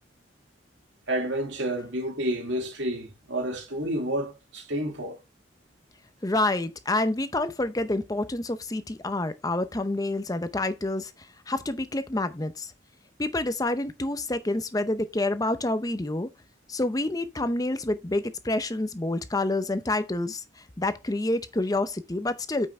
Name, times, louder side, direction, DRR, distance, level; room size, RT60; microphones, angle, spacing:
voice 1, 1.1-5.2, right 1 dB, 80° right, 2.4 m, -30 dB
voice 2, 6.2-12.7 13.2-16.3 16.7-22.7, left 2 dB, 20° left, 0.6 m, -28 dB
9.0 x 5.4 x 3.5 m
head